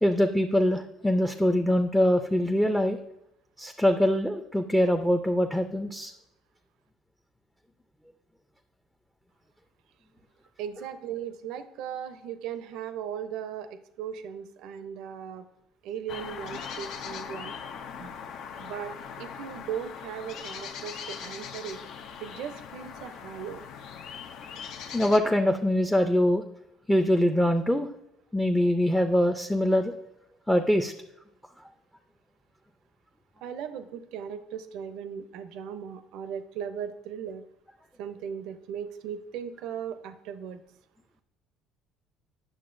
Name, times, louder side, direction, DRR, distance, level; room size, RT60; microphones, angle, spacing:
voice 1, 0.0-3.0 3.6-6.1 24.9-26.4 26.9-27.9 28.3-29.9 30.5-30.9, left 1 dB, 5° left, 7 dB, 0.5 m, -23 dB
voice 2, 10.6-15.5 15.8-17.5 18.0-18.2 18.6-21.8 22.2-23.6 33.4-37.4 38.0-40.6, right 8 dB, 75° right, 11 dB, 0.5 m, -37 dB
sound 1, 16.1-25.2, left 7 dB, 70° left, 0.6 m, -40 dB
8.7 x 6.2 x 2.6 m, 0.83 s
supercardioid pair, 95°, 0 cm